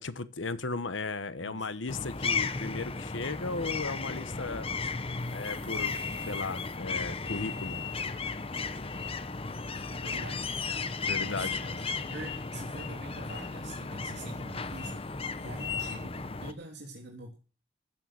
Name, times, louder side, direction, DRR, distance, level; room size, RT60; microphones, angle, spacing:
voice 1, 0.0-4.7 5.3-6.0 6.2-7.8 11.0-11.8, left 3 dB, 85° left, 13 dB, 1.2 m, -36 dB
voice 2, 1.4-2.0 10.0-10.5 11.2-15.1 15.4-17.3, right 1 dB, 65° right, 0 dB, 3.3 m, -45 dB
sound 1, 1.9-16.5, left 4 dB, 30° left, 0.9 m, -35 dB
sound 2, 5.2-6.8 7.1-7.2 7.5-8.0 8.3-8.6 9.3-9.4 9.9-10.1 10.8-10.9, right 7 dB, 30° right, 6.8 m, -58 dB
sound 3, 5.7-6.6 7.2-8.1 8.5-9.3 9.7-10.2 10.7-10.8 11.2-11.7 12.0-12.5 12.8-13.0 13.3-13.6 14.0-14.4 14.7-15.0 15.5-16.0, left 7 dB, 65° left, 2.6 m, -42 dB
15.5 x 9.2 x 7.7 m, 0.36 s
head